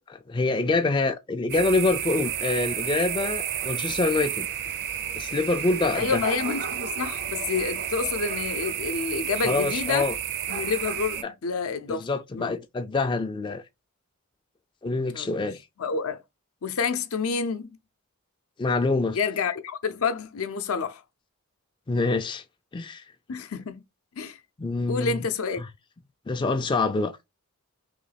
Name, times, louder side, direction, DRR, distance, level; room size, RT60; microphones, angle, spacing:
voice 1, 0.1-4.5 5.1-6.2 9.4-10.1 11.2-11.3 11.9-13.6 14.8-15.6 18.6-19.2 21.9-22.4 22.7-23.0 24.6-25.2 25.6-25.7 26.3-27.1, left 3 dB, 20° left, 0.3 m, -26 dB
sound 1, 1.5-11.2, right 9 dB, 50° right, 0.5 m, -31 dB
voice 2, 5.9-10.1 10.5-12.1 12.3-12.5 15.1-15.5 15.8-16.2 16.6-17.8 19.1-21.0 23.3-23.8 24.2-24.4 24.9-25.6, left 5 dB, 75° left, 0.6 m, -28 dB
3.1 x 2.9 x 4.1 m
head